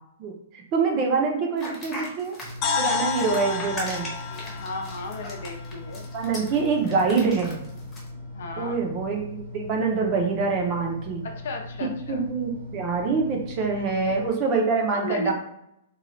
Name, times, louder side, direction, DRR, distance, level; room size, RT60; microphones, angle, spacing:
voice 1, 0.2-2.4 2.8-4.1 6.1-7.6 8.6-11.3 12.1-15.3, right 4 dB, 25° right, 2 dB, 0.6 m, -25 dB
sound 1, 1.6-8.1, left 1 dB, 10° left, 0.9 m, -39 dB
sound 2, 2.4-14.3, left 2 dB, 70° right, 1.0 m, -40 dB
sound 3, 2.6-6.6, left 5 dB, 25° left, 0.5 m, -31 dB
voice 2, 3.2-3.6 4.3-6.1 8.3-8.8 11.2-12.2 13.7-14.0 14.9-15.3, left 2 dB, 65° left, 4 dB, 0.7 m, -35 dB
3.1 x 2.3 x 3.8 m, 0.78 s
hypercardioid pair, 165°, 0 cm